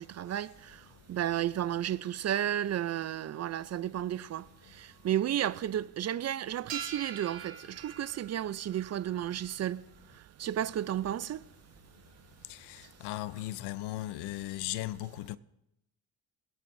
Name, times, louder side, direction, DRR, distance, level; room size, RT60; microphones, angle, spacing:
voice 1, 0.0-9.8 10.1-11.4, right 11 dB, 40° right, 0.5 m, -33 dB
sound 1, 6.7-9.6, right 8 dB, 65° right, 2.0 m, -44 dB
voice 2, 12.5-15.4, left 16 dB, 80° left, 0.6 m, -37 dB
23.5 x 9.3 x 2.7 m
supercardioid pair, 75°, 40 cm